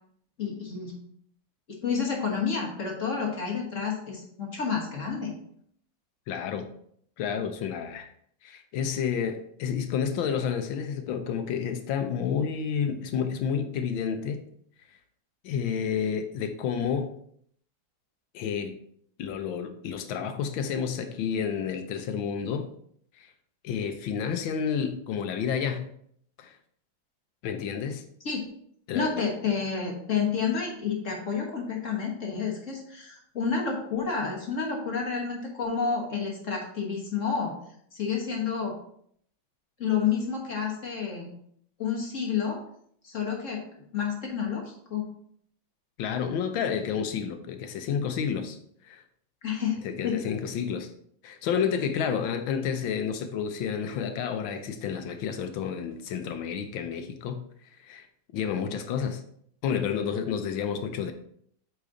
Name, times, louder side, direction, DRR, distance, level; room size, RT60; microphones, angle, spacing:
voice 1, 0.4-0.9 1.8-5.3 28.2-28.4 28.9-37.5 37.9-38.8 39.8-41.3 41.8-42.6 43.0-43.6 43.9-45.1 49.4-49.8 50.0-50.2, left 6 dB, 45° left, -1 dB, 1.4 m, -29 dB
voice 2, 6.3-6.7 7.2-8.1 8.4-14.5 15.4-17.1 18.3-18.8 19.2-22.7 23.2-23.3 23.6-25.9 26.4-26.5 27.4-28.0 28.9-29.3 46.0-48.6 48.8-49.0 49.8-50.9 51.2-58.1 58.3-59.2 59.6-61.1, left 7 dB, 80° left, 8 dB, 1.4 m, -30 dB
8.3 x 4.0 x 3.7 m, 0.66 s
omnidirectional pair, 2.2 m